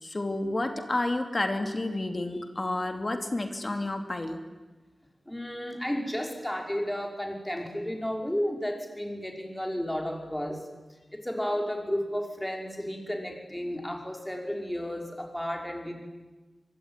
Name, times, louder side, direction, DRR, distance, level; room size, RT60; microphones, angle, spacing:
voice 1, 0.0-4.4, left 2 dB, 35° left, 5 dB, 3.1 m, -30 dB
voice 2, 5.3-10.6 11.1-15.9, equal, 10° left, 2 dB, 5.6 m, -32 dB
24.5 x 24.0 x 10.0 m, 1.2 s
wide cardioid pair, 85°, 0 cm